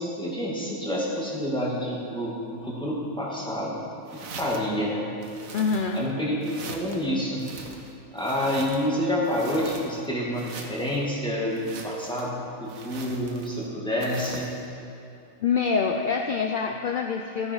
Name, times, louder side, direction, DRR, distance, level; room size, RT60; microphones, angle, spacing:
voice 1, 0.0-3.8 4.1-5.1 5.9-7.5 8.1-14.5, equal, 5° left, -6 dB, 2.3 m, -28 dB
sound 1, 4.1-4.8 5.2-6.1 6.4-7.0 7.4-8.9 9.2-10.1 10.3-11.0 11.5-12.3 12.7-13.6 14.0-14.6, right 4 dB, 80° right, 1.5 m, -42 dB
voice 2, 5.5-6.0 15.4-17.5, left 5 dB, 55° left, 3 dB, 0.6 m, -25 dB
14.5 x 9.7 x 4.8 m, 2.8 s
omnidirectional pair, 1.4 m